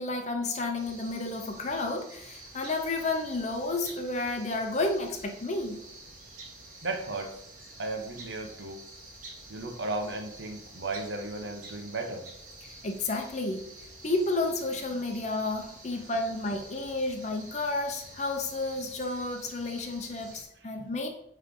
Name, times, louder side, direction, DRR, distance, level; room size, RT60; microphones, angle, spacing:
voice 1, 0.0-5.8 12.8-13.7 14.0-21.1, left 2 dB, 40° left, 4 dB, 0.7 m, -31 dB
sound 1, 0.8-20.4, right 2 dB, 50° right, 1.5 m, -49 dB
voice 2, 6.8-7.3 7.8-8.8 9.5-12.3, right 2 dB, 90° right, 4 dB, 1.0 m, -35 dB
8.5 x 3.3 x 3.7 m, 0.75 s
head